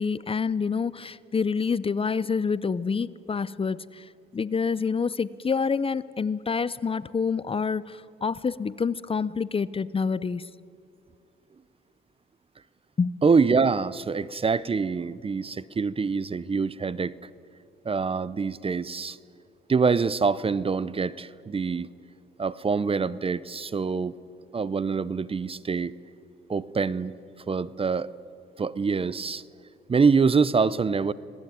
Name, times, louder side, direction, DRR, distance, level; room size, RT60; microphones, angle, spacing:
voice 1, 0.0-4.0 4.3-10.4 13.0-13.1, left 5 dB, 30° left, 18 dB, 0.6 m, -27 dB
voice 2, 13.2-17.1 17.8-19.2 19.7-21.9 22.4-24.1 24.5-25.9 26.5-27.1 27.5-28.1 28.6-29.4 29.9-31.1, right 5 dB, 30° right, 19 dB, 0.7 m, -25 dB
26.0 x 18.5 x 9.4 m, 2.5 s
cardioid pair, 90°, 20 cm